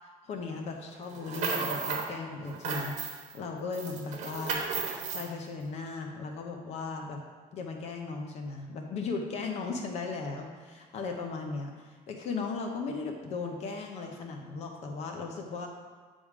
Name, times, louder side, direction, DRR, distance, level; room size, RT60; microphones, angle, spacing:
voice 1, 0.2-4.6 5.1-7.2 7.5-15.7, left 4 dB, 50° left, 3 dB, 0.7 m, -37 dB
sound 1, 1.1-2.1 2.4-3.4 3.7-5.3, right 5 dB, 55° right, 1.1 m, -34 dB
8.4 x 3.6 x 4.9 m, 1.5 s
cardioid pair, 170°, 15 cm